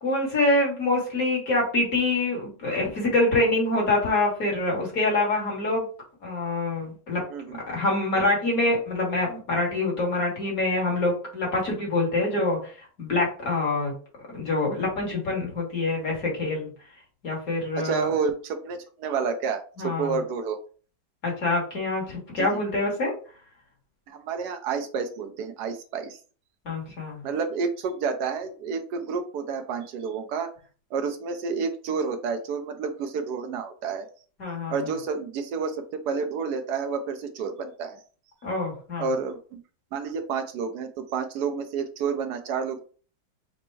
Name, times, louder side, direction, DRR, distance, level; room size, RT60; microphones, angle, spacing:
voice 1, 0.0-5.9 6.2-7.2 7.7-13.9 14.3-16.7 17.2-18.1 19.8-20.2 21.2-23.1 26.7-27.2 34.4-34.9 38.4-39.1, left 2 dB, 50° left, -2 dB, 1.8 m, -25 dB
voice 2, 17.8-20.6 22.4-22.6 24.1-26.2 27.2-30.5 30.9-34.1 34.7-38.0 39.0-39.6 39.9-42.8, right 5 dB, 70° right, 7 dB, 1.1 m, -30 dB
4.2 x 2.1 x 4.5 m, 0.40 s
omnidirectional pair, 2.0 m